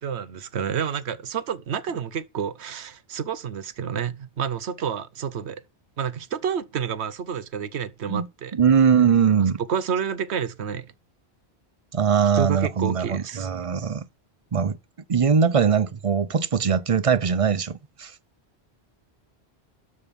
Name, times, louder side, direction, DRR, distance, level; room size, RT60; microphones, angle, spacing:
voice 1, 0.0-5.6 6.0-8.6 9.7-10.9 12.3-13.5, right 7 dB, 80° right, 1.1 m, -29 dB
voice 2, 8.5-9.6 11.9-14.1 14.5-14.8 15.1-18.1, right 7 dB, 40° right, 0.6 m, -21 dB
12.5 x 6.4 x 5.3 m
omnidirectional pair, 1.1 m